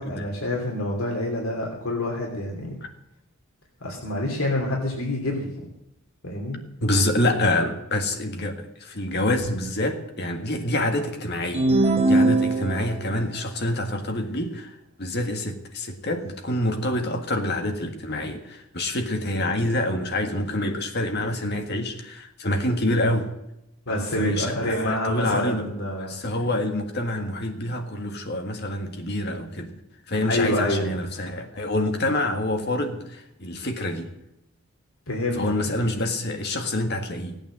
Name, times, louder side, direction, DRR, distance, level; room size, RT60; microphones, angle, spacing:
voice 1, 0.0-2.7 3.8-5.7 6.2-6.6 23.9-26.4 30.2-30.9 35.1-35.4, left 1 dB, 75° left, -1 dB, 3.0 m, -27 dB
voice 2, 6.8-23.3 23.9-25.7 26.0-29.8 30.1-34.1 35.4-37.4, left 1 dB, 50° left, 5 dB, 1.8 m, -27 dB
sound 1, 11.5-13.1, right 2 dB, 30° right, 1.3 m, -20 dB
17.0 x 8.9 x 7.6 m, 0.86 s
head